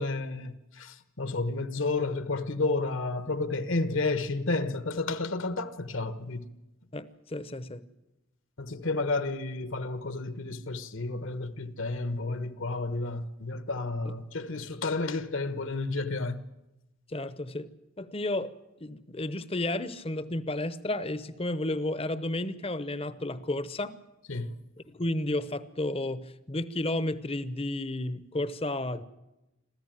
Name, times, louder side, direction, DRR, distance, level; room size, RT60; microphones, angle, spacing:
voice 1, 0.0-6.5 8.6-16.4 24.3-24.6, left 3 dB, 65° left, 1.3 m, -31 dB
voice 2, 6.9-7.8 14.1-14.2 17.1-17.7 18.0-18.5 18.8-23.9 24.9-29.0, left 1 dB, 25° left, 0.9 m, -32 dB
26.0 x 14.5 x 9.1 m
head